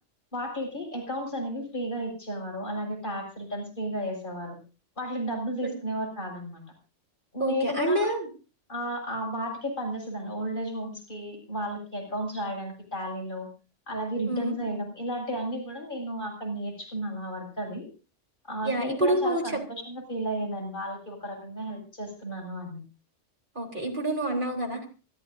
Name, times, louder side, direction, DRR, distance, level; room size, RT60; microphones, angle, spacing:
voice 1, 0.3-4.6 5.0-6.6 7.3-8.1 8.7-13.5 13.9-17.9 18.4-22.8, equal, 45° left, 0 dB, 7.4 m, -33 dB
voice 2, 7.4-8.3 14.3-14.5 18.6-19.6 23.6-24.9, right 1 dB, 45° right, 1 dB, 3.9 m, -27 dB
27.5 x 14.0 x 2.7 m, 0.34 s
omnidirectional pair, 1.2 m